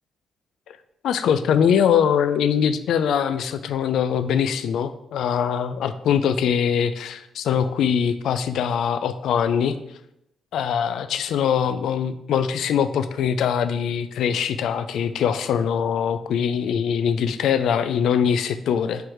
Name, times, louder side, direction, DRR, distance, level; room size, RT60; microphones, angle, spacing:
voice 1, 1.0-9.8 10.5-19.1, left 8 dB, 80° left, 12 dB, 0.4 m, -22 dB
4.6 x 4.5 x 4.9 m, 0.83 s
supercardioid pair, 55°, 0 cm